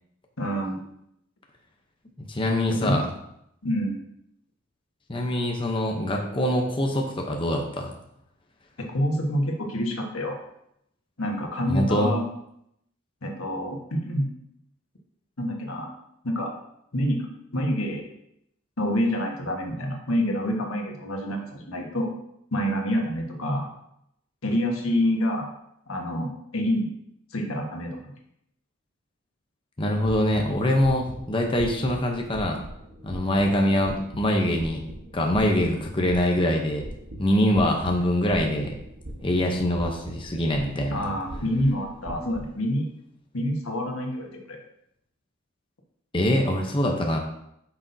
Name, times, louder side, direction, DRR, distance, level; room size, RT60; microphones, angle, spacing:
voice 1, 0.4-0.8 2.7-3.0 3.6-3.9 8.8-10.4 11.2-12.2 13.2-14.3 15.4-15.9 16.2-16.5 16.9-17.3 17.5-18.0 18.8-22.1 22.5-23.7 24.4-25.5 25.9-26.9 27.3-28.0 40.9-42.8 43.3-44.6, equal, 85° left, 1 dB, 1.4 m, -27 dB
voice 2, 2.3-3.0 5.1-7.9 11.7-12.1 29.8-32.6 33.0-34.8 35.1-36.8 37.2-38.7 39.2-41.1 46.1-47.2, left 1 dB, 25° left, 1 dB, 0.8 m, -24 dB
sound 1, 30.4-42.5, right 1 dB, 55° right, 1.3 m, -41 dB
8.3 x 6.1 x 2.7 m, 0.77 s
head